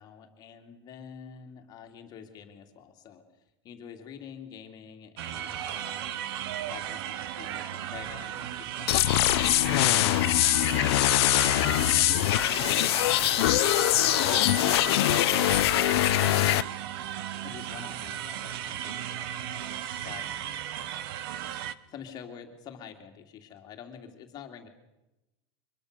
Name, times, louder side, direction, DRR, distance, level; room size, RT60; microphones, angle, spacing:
voice 1, 0.0-3.2 3.6-6.3 6.7-9.7 10.9-15.1 17.4-20.6 21.6-24.7, left 7 dB, 30° left, 5 dB, 2.6 m, -47 dB
sound 1, 5.2-21.7, right 11 dB, 55° right, 1.2 m, -35 dB
sound 2, 8.9-16.6, left 17 dB, 65° left, 0.8 m, -23 dB
24.5 x 21.5 x 6.7 m, 0.96 s
supercardioid pair, 165°, 14 cm